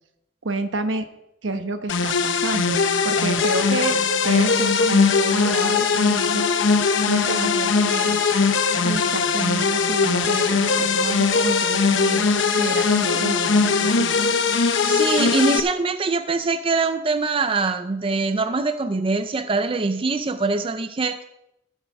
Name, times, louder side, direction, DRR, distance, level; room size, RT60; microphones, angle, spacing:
voice 1, 0.4-1.0 1.4-4.0 4.2-6.4 7.1-8.2 8.8-12.3 12.6-14.2, right 2 dB, 75° right, 8 dB, 1.1 m, -29 dB
sound 1, 1.9-15.6, left 4 dB, 75° left, 0.8 m, -20 dB
voice 2, 14.5-21.2, right 3 dB, 30° right, 10 dB, 0.5 m, -23 dB
13.5 x 8.0 x 4.8 m, 0.86 s
head